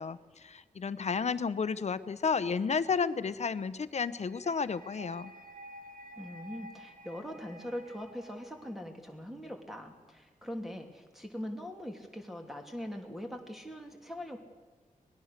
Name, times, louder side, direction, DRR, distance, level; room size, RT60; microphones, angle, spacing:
voice 1, 0.0-5.3, left 5 dB, 50° left, 14 dB, 0.9 m, -32 dB
sound 1, 4.0-9.0, equal, 85° right, 2.0 m, -51 dB
voice 2, 6.2-14.4, equal, ahead, 3 dB, 2.9 m, -42 dB
24.5 x 20.5 x 6.7 m, 1.4 s
wide cardioid pair, 140°, 14 cm